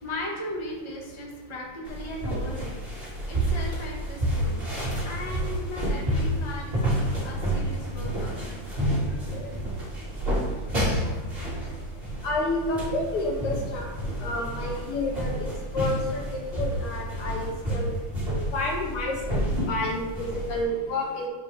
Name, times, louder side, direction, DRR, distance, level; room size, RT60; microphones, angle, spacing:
voice 1, 0.0-4.6 5.0-8.4, left 1 dB, 15° left, -2 dB, 1.2 m, -37 dB
sound 1, 1.9-20.6, right 1 dB, 25° right, 2.1 m, -30 dB
voice 2, 12.2-13.9 14.2-17.9 18.5-19.4 19.7-21.3, left 2 dB, 80° left, -1 dB, 2.4 m, -29 dB
12.0 x 4.9 x 3.4 m, 1.3 s
omnidirectional pair, 2.4 m